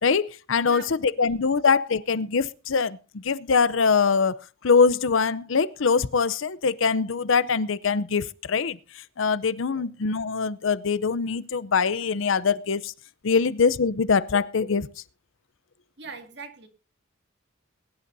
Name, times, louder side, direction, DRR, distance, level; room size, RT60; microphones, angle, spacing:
voice 1, 0.0-12.9 13.2-14.9, left 5 dB, 70° left, 0.6 m, -23 dB
voice 2, 0.6-1.3 9.6-9.9 16.0-16.7, right 4 dB, 55° right, 2.2 m, -42 dB
21.5 x 11.5 x 2.7 m
head